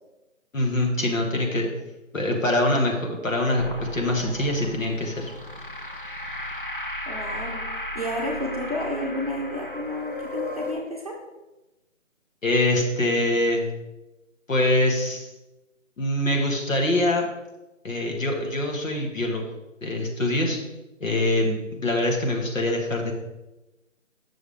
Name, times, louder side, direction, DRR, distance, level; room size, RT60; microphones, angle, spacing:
voice 1, 0.5-1.7 2.1-3.7 3.9-5.3 12.4-13.7 14.5-15.3 16.0-17.3 17.8-19.5 19.8-20.6 21.0-23.1, left 1 dB, 75° left, 1 dB, 1.8 m, -24 dB
sound 1, 3.6-10.7, left 1 dB, 40° left, 0.7 m, -35 dB
voice 2, 7.1-11.2, left 1 dB, 30° right, -2 dB, 0.9 m, -31 dB
7.0 x 6.2 x 3.6 m, 1.0 s
figure-of-eight pair, 175°, 40 cm